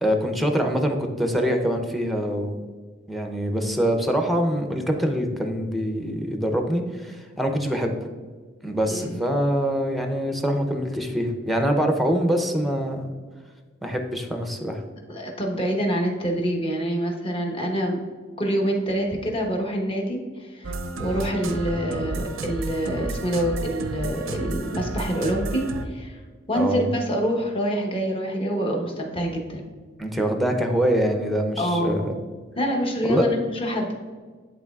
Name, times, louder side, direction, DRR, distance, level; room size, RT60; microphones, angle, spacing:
voice 1, 0.0-2.6 3.1-7.9 8.6-13.1 13.8-14.8 26.5-26.9 30.0-32.1 33.1-33.3, equal, ahead, 4 dB, 0.6 m, -24 dB
voice 2, 15.1-18.0 18.4-26.2 26.5-29.6 31.6-32.0 32.6-33.9, equal, 30° left, 0 dB, 1.1 m, -26 dB
sound 1, 20.6-25.9, right 2 dB, 85° right, 0.6 m, -31 dB
10.5 x 3.9 x 2.4 m, 1.5 s
head